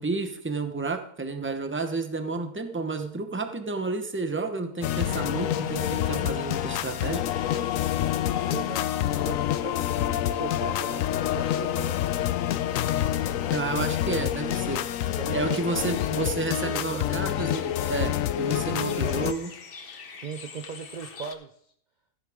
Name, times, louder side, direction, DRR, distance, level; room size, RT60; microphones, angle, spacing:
voice 1, 0.0-7.2 13.5-14.9 15.3-19.5, right 3 dB, 10° right, 7 dB, 0.7 m, -31 dB
sound 1, 4.8-19.3, left 11 dB, 70° left, 0.9 m, -27 dB
voice 2, 8.4-8.9 9.2-12.0 15.2-17.0 19.0-19.2 20.1-21.7, right 5 dB, 50° right, 7 dB, 0.5 m, -39 dB
Bird, 15.7-21.3, left 5 dB, 40° left, 1.0 m, -46 dB
15.0 x 10.0 x 3.6 m, 0.66 s
omnidirectional pair, 1.6 m